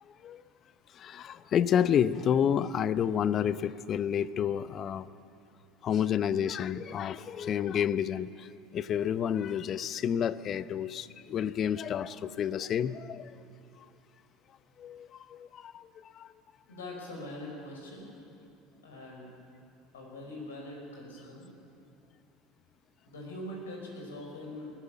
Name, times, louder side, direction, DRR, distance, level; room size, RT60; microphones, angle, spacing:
voice 1, 0.9-5.1 5.8-8.5 8.7-13.3 14.8-16.3, left 9 dB, 45° left, 16 dB, 0.7 m, -30 dB
voice 2, 16.7-18.1 18.8-19.3 19.9-21.4 23.1-24.7, left 1 dB, 85° left, 0 dB, 5.3 m, -42 dB
19.5 x 15.0 x 9.2 m, 2.7 s
hypercardioid pair, 75°, 0 cm